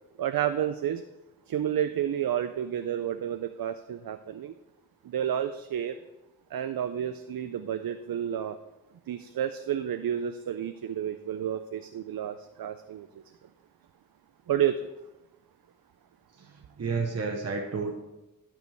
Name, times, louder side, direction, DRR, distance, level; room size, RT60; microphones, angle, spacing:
voice 1, 0.2-1.0 1.5-4.5 5.0-6.0 6.5-8.6 9.1-13.1 14.5-14.8, right 10 dB, 85° right, 10 dB, 0.5 m, -30 dB
voice 2, 16.4-17.9, right 4 dB, 45° right, 2 dB, 0.9 m, -31 dB
12.0 x 5.3 x 4.6 m, 1.0 s
wide cardioid pair, 130°, 34 cm